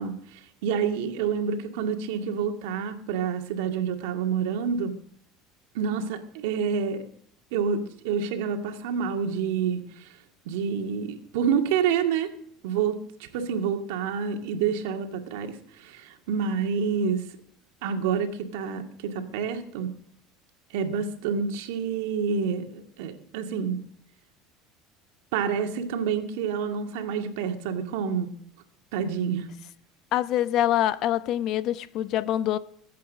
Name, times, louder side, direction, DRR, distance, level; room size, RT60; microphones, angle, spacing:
voice 1, 0.0-4.9 5.7-7.0 7.5-10.1 10.5-12.3 12.6-17.2 17.8-19.9 20.7-23.8 25.3-28.3 28.9-29.5, right 6 dB, 80° right, 2.1 m, -28 dB
voice 2, 30.1-32.6, left 12 dB, 55° left, 0.9 m, -25 dB
21.5 x 8.4 x 6.5 m
supercardioid pair, 110°, 0 cm